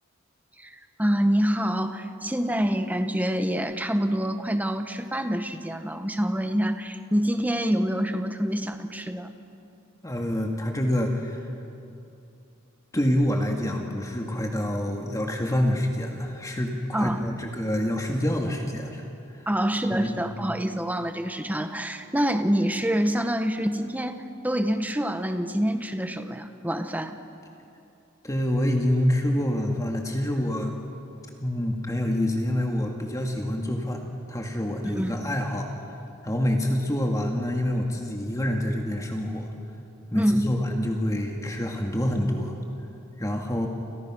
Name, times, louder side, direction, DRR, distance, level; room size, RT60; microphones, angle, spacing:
voice 1, 0.6-9.3 16.9-17.3 19.5-24.2 24.4-27.2 34.8-35.1 40.1-40.5, equal, 10° right, 7 dB, 1.3 m, -26 dB
voice 2, 10.0-11.4 12.9-19.0 19.3-19.5 19.9-20.3 28.2-30.8 31.4-34.0 34.3-36.0 36.2-39.5 40.1-42.6 43.2-43.7, left 1 dB, 15° left, 1 dB, 2.0 m, -27 dB
29.0 x 28.5 x 6.2 m, 2.7 s
head